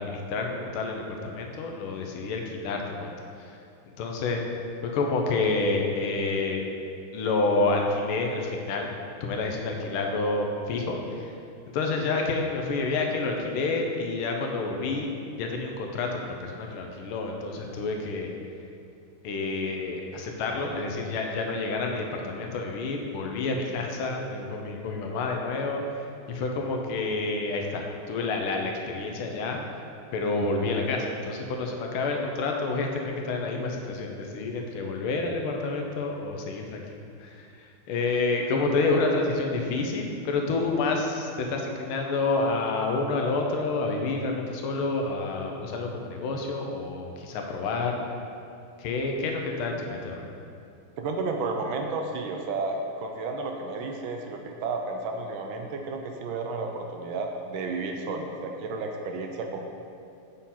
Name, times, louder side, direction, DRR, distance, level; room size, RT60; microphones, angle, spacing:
voice 1, 0.0-3.6 4.0-4.4 4.8-6.6 7.1-8.9 9.2-11.3 11.7-15.1 15.4-18.3 19.2-29.6 30.1-36.8 37.2-48.0 48.8-50.3, left 3 dB, 80° left, 2 dB, 1.5 m, -29 dB
voice 2, 51.0-59.6, right 3 dB, 75° right, 3 dB, 1.3 m, -32 dB
7.3 x 3.7 x 4.2 m, 2.6 s
omnidirectional pair, 2.4 m